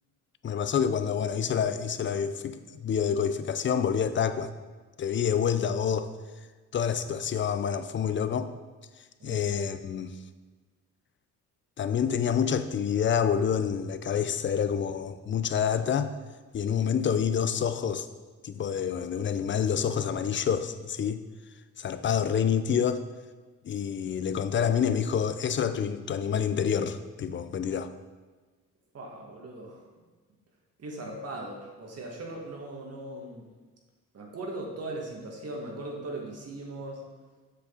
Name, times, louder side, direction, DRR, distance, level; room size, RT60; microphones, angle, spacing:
voice 1, 0.4-4.5 5.0-6.1 6.7-8.5 9.2-10.1 11.8-16.1 16.5-18.1 18.4-21.2 21.8-23.0 23.6-27.9, left 7 dB, 40° left, 11 dB, 0.5 m, -27 dB
voice 2, 28.9-29.8 30.8-33.5 34.1-37.0, right 2 dB, 55° right, 0 dB, 1.8 m, -39 dB
7.5 x 6.6 x 3.8 m, 1.3 s
cardioid pair, 90°, 30 cm